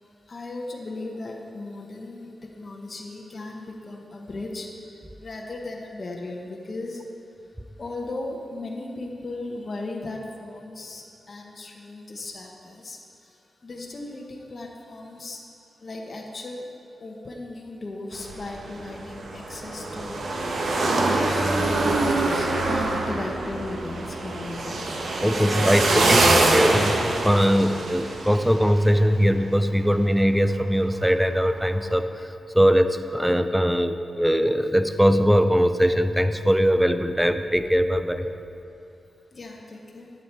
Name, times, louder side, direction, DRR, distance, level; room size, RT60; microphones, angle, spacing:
voice 1, 0.3-7.0 7.8-15.4 15.8-16.7 17.0-26.4 39.3-40.1, left 2 dB, 40° left, 0 dB, 1.0 m, -37 dB
sound 1, 18.1-29.1 29.4-29.5 31.5-31.8, right 2 dB, 65° right, 1.1 m, -24 dB
voice 2, 25.2-26.2 26.5-32.1 32.5-38.3, equal, ahead, 9 dB, 0.4 m, -21 dB
11.0 x 8.4 x 4.4 m, 2.8 s
wide cardioid pair, 135°, 0 cm